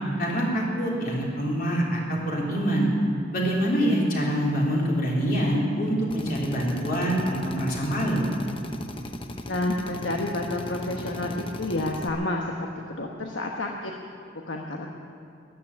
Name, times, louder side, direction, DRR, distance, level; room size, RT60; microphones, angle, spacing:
voice 1, 0.2-2.9 3.3-8.2, equal, 50° left, -3 dB, 3.7 m, -25 dB
Drill, 6.1-12.1, left 1 dB, 30° left, 0.8 m, -38 dB
voice 2, 9.5-13.9 14.5-14.9, left 2 dB, 70° left, 0 dB, 1.2 m, -30 dB
13.5 x 11.0 x 9.7 m, 2.4 s
head